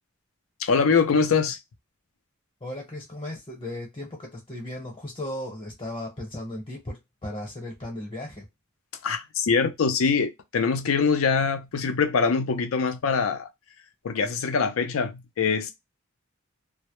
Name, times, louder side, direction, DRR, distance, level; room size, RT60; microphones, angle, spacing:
voice 1, 0.6-1.6 9.0-13.5 14.0-15.7, left 5 dB, 80° left, 0.5 m, -23 dB
voice 2, 2.6-8.5, left 1 dB, 30° left, 0.8 m, -36 dB
2.1 x 2.0 x 2.9 m
head